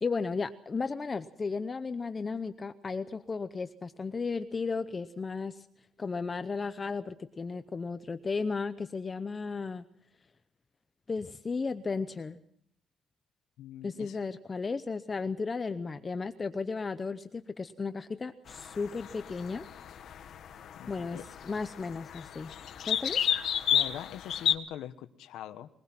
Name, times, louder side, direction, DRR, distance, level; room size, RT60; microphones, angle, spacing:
voice 1, 0.0-5.7 6.0-9.8 11.1-12.4 13.8-19.6 20.9-22.5 22.9-23.2, left 4 dB, 20° left, 10 dB, 0.7 m, -34 dB
voice 2, 13.6-14.2 20.8-21.2 23.7-25.7, left 11 dB, 90° left, 8 dB, 1.1 m, -43 dB
sound 1, 18.5-24.6, left 9 dB, 50° left, 1.6 m, -32 dB
22.0 x 20.5 x 6.0 m, 0.69 s
cardioid pair, 170°, 0 cm